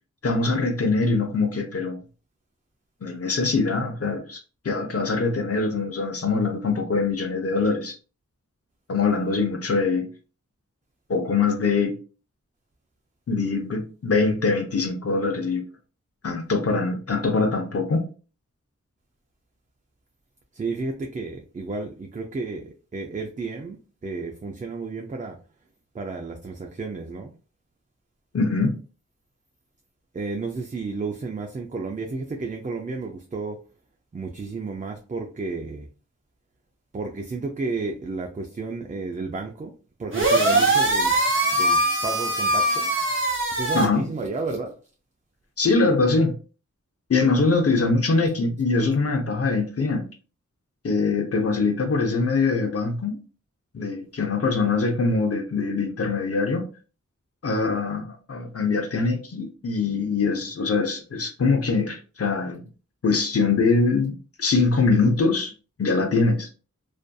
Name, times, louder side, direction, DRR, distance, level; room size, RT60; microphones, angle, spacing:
voice 1, 0.2-2.0 3.0-7.9 8.9-10.1 11.1-12.0 13.3-15.6 16.2-18.1 28.3-28.8 43.7-44.1 45.6-46.3 47.1-50.1 50.8-53.2 53.7-56.7 57.4-62.7 63.0-65.5 65.8-66.5, left 4 dB, 50° left, 0.6 m, -23 dB
voice 2, 20.5-23.8 24.0-25.4 25.9-27.3 30.1-33.6 34.1-35.9 36.9-39.7 40.0-41.2 41.5-42.9 43.5-44.8, right 3 dB, 25° right, 0.4 m, -32 dB
sound 1, 40.1-43.9, right 2 dB, 45° right, 0.7 m, -21 dB
2.5 x 2.5 x 2.2 m
wide cardioid pair, 80°, 30 cm